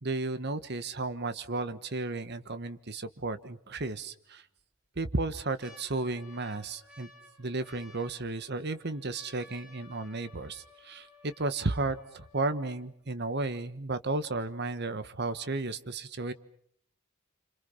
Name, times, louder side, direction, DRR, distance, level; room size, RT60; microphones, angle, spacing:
voice 1, 0.0-4.4 5.0-7.1 7.4-16.3, right 3 dB, 55° right, 12 dB, 1.3 m, -33 dB
sound 1, 4.2-4.6 5.1-13.1 13.8-13.9 14.0-14.5 15.0-15.1, left 2 dB, 5° right, 5.4 m, -57 dB
28.0 x 26.0 x 5.7 m, 0.63 s
head